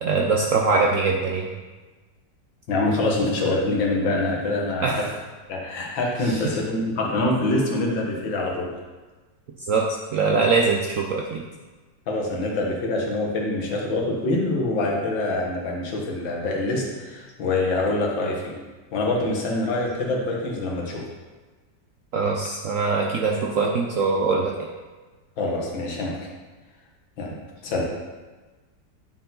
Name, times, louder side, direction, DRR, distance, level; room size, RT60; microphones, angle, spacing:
voice 1, 0.0-1.5 4.8-5.0 6.2-6.3 9.6-9.8 10.1-11.4 22.1-24.5, right 4 dB, 65° right, 0 dB, 0.8 m, -22 dB
voice 2, 2.7-5.1 5.5-8.7 12.1-18.5 18.9-21.1 25.4-26.2 27.2-27.3 27.6-27.8, left 2 dB, 80° left, -1 dB, 2.0 m, -25 dB
9.4 x 4.5 x 3.9 m, 1.3 s
omnidirectional pair, 2.0 m